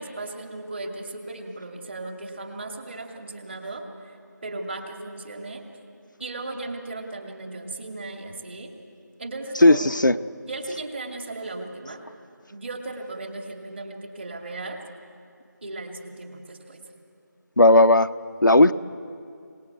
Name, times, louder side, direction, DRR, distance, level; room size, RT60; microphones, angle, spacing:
voice 1, 0.0-4.2 4.4-5.6 6.2-8.7 9.2-9.9 10.4-12.0 12.5-14.8 15.6-16.8, right 2 dB, 35° right, 4 dB, 2.3 m, -36 dB
voice 2, 9.6-10.1 17.6-18.1 18.4-18.7, left 2 dB, 85° left, 10 dB, 0.8 m, -15 dB
26.0 x 18.5 x 8.1 m, 2.5 s
figure-of-eight pair, 165°, 10 cm